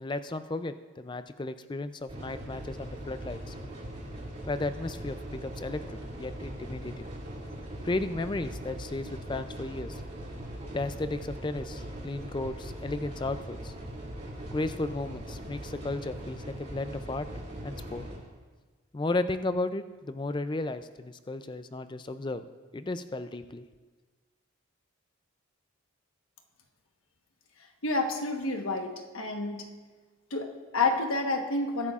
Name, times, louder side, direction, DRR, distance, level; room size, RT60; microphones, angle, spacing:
voice 1, 0.0-3.5 4.5-7.1 7.8-10.0 10.7-13.7 14.5-17.3 17.6-18.0 18.9-22.5 22.7-23.7, left 2 dB, 20° left, 11 dB, 0.3 m, -34 dB
sound 1, 2.1-18.2, right 1 dB, 30° right, 2.5 m, -40 dB
voice 2, 27.8-29.7 30.3-31.9, left 3 dB, 70° left, 4 dB, 1.2 m, -29 dB
21.0 x 11.0 x 2.4 m, 1.4 s
head